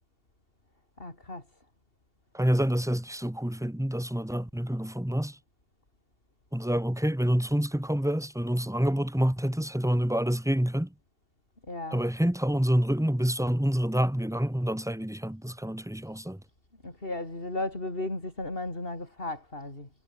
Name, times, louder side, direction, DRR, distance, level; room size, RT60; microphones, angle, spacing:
voice 1, 1.0-1.4 11.7-12.0 16.8-19.9, left 2 dB, 60° left, 5.4 m, -35 dB
voice 2, 2.3-5.4 6.5-10.9 11.9-16.4, equal, 5° right, 1.1 m, -27 dB
omnidirectional pair, 1.1 m